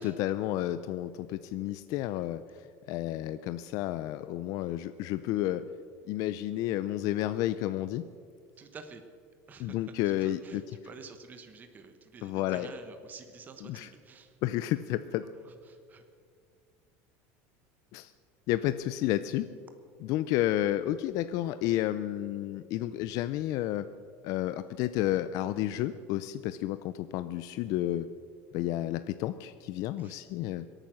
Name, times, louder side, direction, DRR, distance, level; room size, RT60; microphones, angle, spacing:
voice 1, 0.0-5.6 6.1-8.0 9.6-10.6 12.2-12.7 13.6-13.9 14.4-15.2 17.9-18.1 18.5-19.5 20.0-23.9 24.2-28.1 28.5-30.6, left 14 dB, 50° left, 12 dB, 0.5 m, -31 dB
voice 2, 8.6-9.0 9.5-9.8 10.2-14.4 15.4-16.0 30.0-30.2, right 5 dB, 25° right, 7 dB, 1.1 m, -49 dB
24.0 x 9.0 x 6.4 m, 2.2 s
cardioid pair, 150°, 7 cm